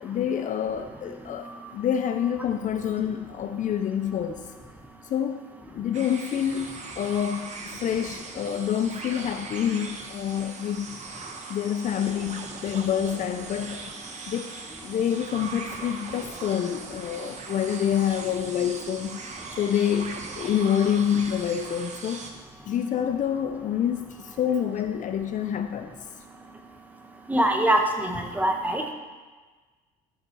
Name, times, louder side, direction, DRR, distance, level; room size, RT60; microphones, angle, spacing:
voice 1, 0.0-4.4 5.1-5.4 5.7-6.7 7.0-10.9 11.5-13.8 14.3-14.5 14.8-19.3 19.6-22.2 22.7-25.9, left 9 dB, 50° left, 8 dB, 0.5 m, -27 dB
sound 1, 5.9-22.3, right 4 dB, 45° right, 1.2 m, -40 dB
voice 2, 27.3-28.8, right 1 dB, 10° right, 3 dB, 1.2 m, -23 dB
13.0 x 5.7 x 4.7 m, 1.4 s
cardioid pair, 110°, 17 cm